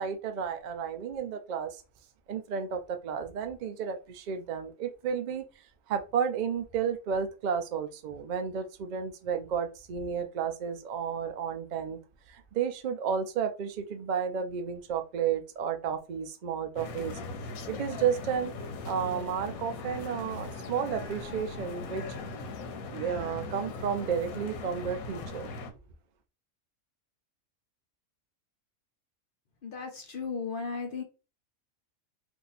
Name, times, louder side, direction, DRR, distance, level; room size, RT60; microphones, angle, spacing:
voice 1, 0.0-1.8 2.3-5.4 5.9-12.0 12.3-17.2 17.7-18.5 18.8-22.0 22.9-25.5, right 7 dB, 85° right, 0.4 m, -32 dB
sound 1, 16.8-25.7, left 3 dB, 90° left, 1.1 m, -39 dB
voice 2, 29.6-31.0, left 5 dB, 50° left, 0.7 m, -35 dB
2.8 x 2.4 x 4.0 m
omnidirectional pair, 1.4 m